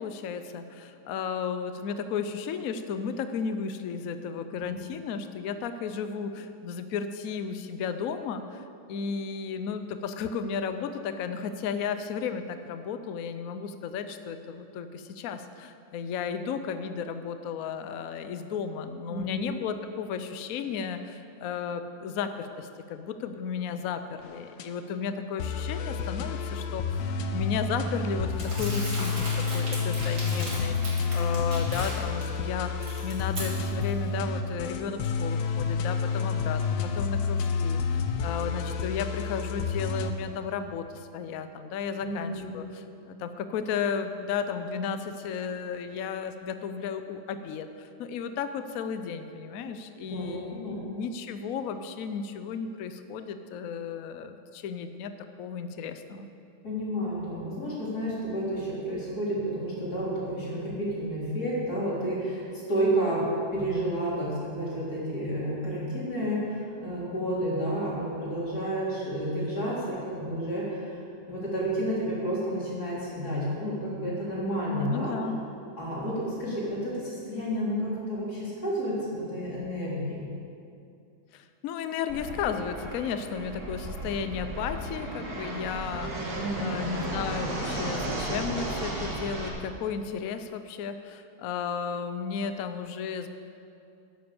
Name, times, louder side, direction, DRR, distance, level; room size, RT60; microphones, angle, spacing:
voice 1, 0.0-29.1 29.5-32.7 33.0-36.6 36.9-55.1 55.4-56.3 74.7-75.4 81.3-86.1 86.6-93.3, left 6 dB, 85° left, 9 dB, 0.7 m, -34 dB
voice 2, 19.1-19.5 42.0-42.5 50.0-50.8 56.6-63.2 63.5-71.0 71.3-75.1 75.8-80.3 86.0-86.8, right 1 dB, 45° left, -7 dB, 4.3 m, -31 dB
sound 1, 24.2-24.7 25.4-40.1, left 5 dB, 70° left, 1.4 m, -29 dB
Crumpling crinkling, 28.4-32.2 32.6-33.9, right 1 dB, 70° right, 4.4 m, -38 dB
Fixed-wing aircraft airplane, 82.1-89.5, right 1 dB, 45° right, 2.4 m, -34 dB
11.5 x 10.5 x 7.0 m, 2.5 s
omnidirectional pair, 2.3 m